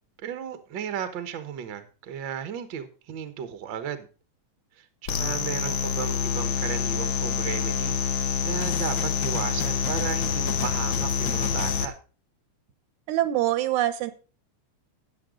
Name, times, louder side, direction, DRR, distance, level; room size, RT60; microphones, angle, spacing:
voice 1, 0.2-4.1 4.8-7.9 8.4-11.9, right 8 dB, 55° right, 10 dB, 1.4 m, -34 dB
sound 1, 5.1-11.9, left 7 dB, 65° left, 1.2 m, -26 dB
voice 2, 13.1-14.1, right 14 dB, 80° right, 13 dB, 2.3 m, -24 dB
12.5 x 8.8 x 3.8 m, 0.35 s
omnidirectional pair, 3.4 m